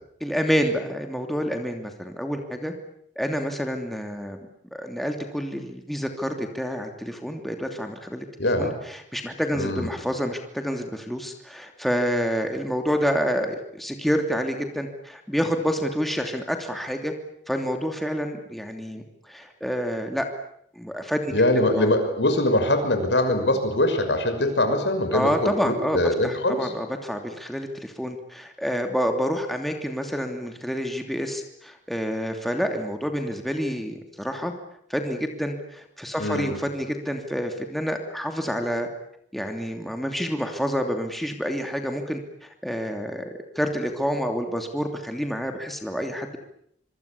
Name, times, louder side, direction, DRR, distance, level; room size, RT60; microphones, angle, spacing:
voice 1, 0.2-2.7 3.2-8.2 8.6-17.1 17.5-20.3 20.8-21.9 25.1-26.0 26.2-34.5 34.9-38.9 39.3-46.4, equal, ahead, 4 dB, 2.9 m, -28 dB
voice 2, 8.4-8.8 9.5-9.9 21.3-26.7 36.2-36.5, left 1 dB, 85° left, 7 dB, 6.1 m, -23 dB
25.5 x 25.0 x 8.6 m, 0.70 s
head